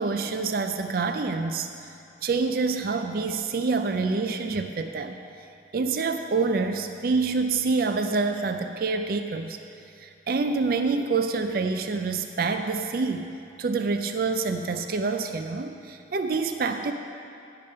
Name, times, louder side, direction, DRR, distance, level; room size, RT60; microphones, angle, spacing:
voice 1, 0.0-1.7 2.2-5.2 5.7-9.6 10.0-13.3 13.6-16.9, right 4 dB, 50° right, 7 dB, 0.4 m, -27 dB
15.0 x 5.1 x 5.5 m, 2.6 s
head